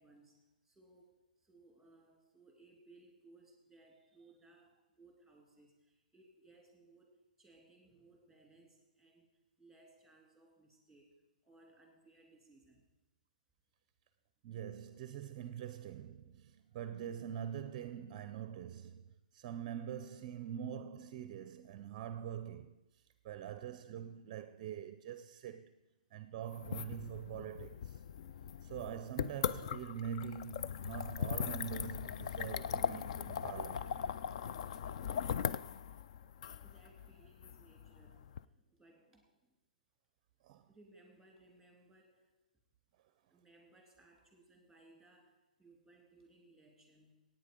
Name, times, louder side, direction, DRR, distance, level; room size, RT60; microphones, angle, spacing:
voice 1, 0.0-9.3 9.6-12.9 36.2-39.6 40.7-42.4 43.3-47.2, right 2 dB, ahead, 2.7 m, -64 dB
voice 2, 14.4-19.0 19.3-22.8 23.2-25.7 26.1-28.0 28.6-34.0 40.4-40.7, right 9 dB, 30° right, 0.6 m, -44 dB
sound 1, 26.5-38.4, left 8 dB, 45° left, 0.4 m, -40 dB
16.5 x 9.1 x 5.3 m
hypercardioid pair, 155°, 5 cm